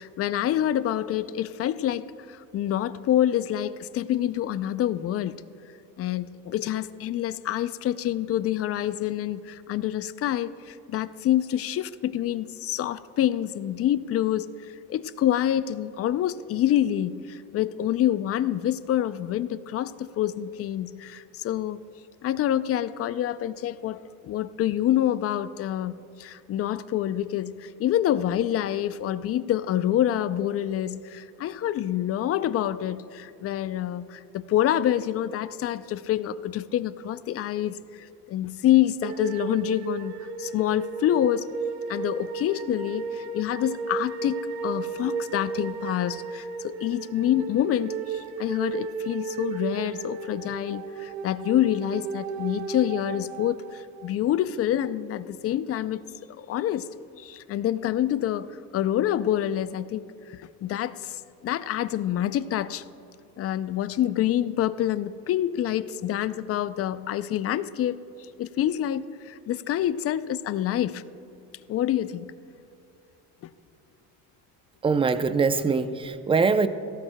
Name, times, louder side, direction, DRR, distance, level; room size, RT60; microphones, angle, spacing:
voice 1, 0.0-5.5 6.0-14.5 14.9-21.8 22.2-40.1 40.4-41.5 41.9-56.0 56.4-56.9 57.2-58.5 58.7-62.8 63.4-68.0 68.4-71.0 71.7-72.3, left 11 dB, 40° left, 0.4 m, -27 dB
sound 1, 39.0-54.1, right 5 dB, 85° right, 1.1 m, -34 dB
voice 2, 74.8-76.7, right 4 dB, 15° right, 0.5 m, -23 dB
17.0 x 15.0 x 2.2 m
supercardioid pair, 105°, 40 cm